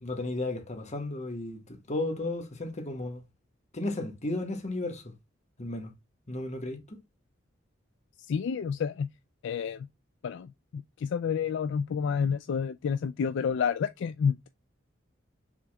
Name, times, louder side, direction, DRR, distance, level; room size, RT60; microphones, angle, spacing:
voice 1, 0.0-1.6 1.9-3.2 3.7-5.1 5.6-5.9 6.3-7.0, left 2 dB, 35° left, 1.4 m, -34 dB
voice 2, 8.3-9.1 9.4-9.9 10.2-14.5, left 6 dB, 65° left, 0.3 m, -29 dB
6.1 x 3.7 x 2.2 m
head